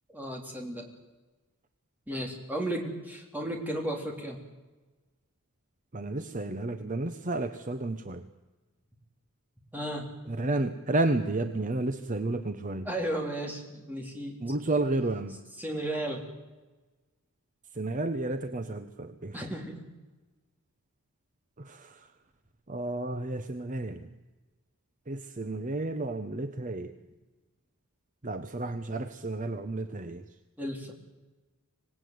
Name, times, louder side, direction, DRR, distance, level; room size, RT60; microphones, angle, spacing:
voice 1, 0.1-0.9 2.1-4.4 9.7-10.1 12.9-14.4 15.6-16.3 19.3-19.8 30.6-30.9, right 1 dB, 10° right, 1 dB, 3.5 m, -34 dB
voice 2, 5.9-8.3 10.3-12.9 14.4-15.4 17.8-19.4 21.6-22.0 22.7-24.1 25.1-26.9 28.2-30.2, right 2 dB, 35° right, 9 dB, 1.0 m, -31 dB
25.5 x 17.5 x 9.5 m, 1.2 s
head